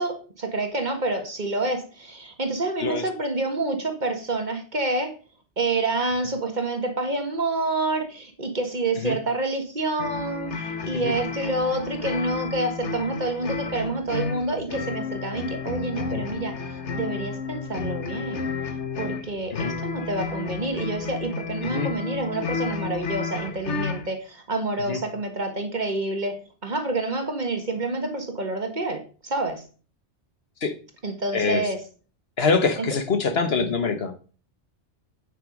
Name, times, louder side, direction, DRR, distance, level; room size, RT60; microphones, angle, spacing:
voice 1, 0.0-5.1 5.6-18.5 19.0-26.4 26.6-29.6 31.0-31.8, right 2 dB, 40° right, 5 dB, 1.7 m, -28 dB
voice 2, 2.8-3.1 9.0-9.2 10.9-11.1 16.1-16.2 19.5-19.7 21.6-21.9 24.9-25.0 30.6-30.7 31.3-31.7 32.4-34.1, left 4 dB, 65° left, 8 dB, 1.4 m, -25 dB
sound 1, 10.0-24.1, left 4 dB, 85° left, 1.5 m, -32 dB
9.5 x 6.0 x 5.3 m, 0.38 s
omnidirectional pair, 1.1 m